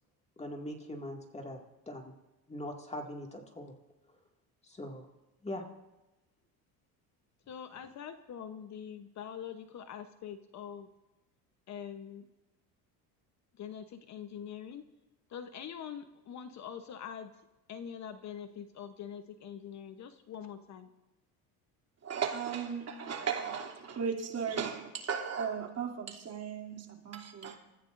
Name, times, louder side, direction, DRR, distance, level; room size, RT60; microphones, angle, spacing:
voice 1, 0.4-1.6 1.9-2.1 2.5-3.7 4.6-5.1 5.4-5.6, left 1 dB, 15° left, 2 dB, 2.3 m, -41 dB
voice 2, 7.5-10.9 11.7-12.3 13.6-14.8 15.3-17.3 17.7-20.9, left 8 dB, 45° left, 8 dB, 1.0 m, -44 dB
voice 3, 22.0-27.6, right 6 dB, 40° right, 1 dB, 3.0 m, -36 dB
28.5 x 14.5 x 2.6 m, 1.0 s
cardioid pair, 120°, 40 cm